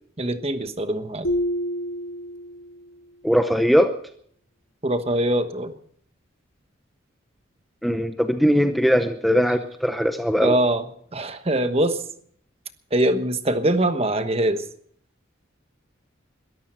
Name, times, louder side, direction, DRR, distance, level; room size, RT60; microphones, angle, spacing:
voice 1, 0.2-1.3 4.8-5.7 10.4-10.8 11.1-12.0 12.9-14.6, right 1 dB, 30° right, 9 dB, 1.2 m, -23 dB
sound 1, 1.2-2.9, equal, 75° left, 1.7 m, -28 dB
voice 2, 3.2-3.9 7.8-10.6, equal, ahead, 7 dB, 0.7 m, -20 dB
22.0 x 13.5 x 4.4 m, 0.62 s
head